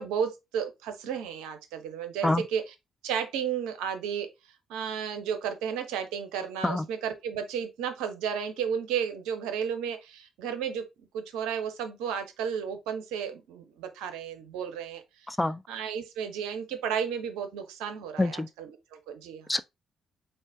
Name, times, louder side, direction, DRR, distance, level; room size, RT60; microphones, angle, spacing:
voice 1, 0.0-2.6 3.0-4.3 4.7-10.8 11.1-15.0 15.7-19.5, right 7 dB, 75° right, 0.6 m, -33 dB
voice 2, 15.3-15.6 18.2-18.5 19.5-19.6, left 2 dB, 15° left, 0.4 m, -26 dB
3.8 x 2.4 x 3.6 m
hypercardioid pair, 40°, 0 cm